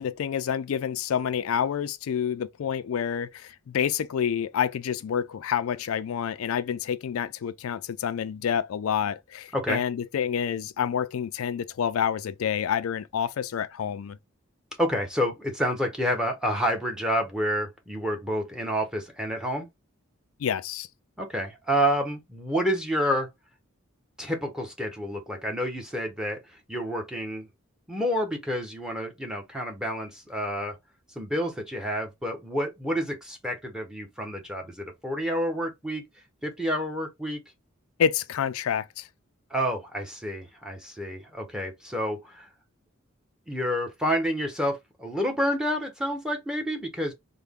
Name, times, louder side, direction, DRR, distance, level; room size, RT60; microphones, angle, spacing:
voice 1, 0.0-14.2 20.4-20.9 38.0-39.1, left 8 dB, 90° left, 0.4 m, -28 dB
voice 2, 14.8-19.7 21.2-23.3 24.2-27.5 27.9-30.7 31.2-36.1 36.4-37.4 39.5-42.5 43.5-47.1, equal, 5° right, 0.8 m, -29 dB
3.3 x 2.2 x 3.6 m
head